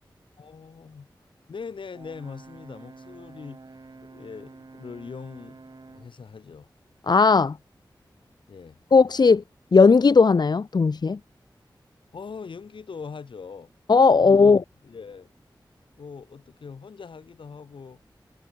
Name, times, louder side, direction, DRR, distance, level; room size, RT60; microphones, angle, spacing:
voice 1, 0.4-1.1 1.5-3.6 4.0-6.7 8.5-8.8 12.1-13.7 14.2-14.5 14.8-15.3 16.0-18.0, left 5 dB, 85° left, 3.0 m, -41 dB
Brass instrument, 1.9-6.2, right 3 dB, 55° right, 5.1 m, -48 dB
voice 2, 7.1-7.6 8.9-9.4 9.7-11.2 13.9-14.6, left 4 dB, 55° left, 0.6 m, -17 dB
cardioid pair, 45°, 8 cm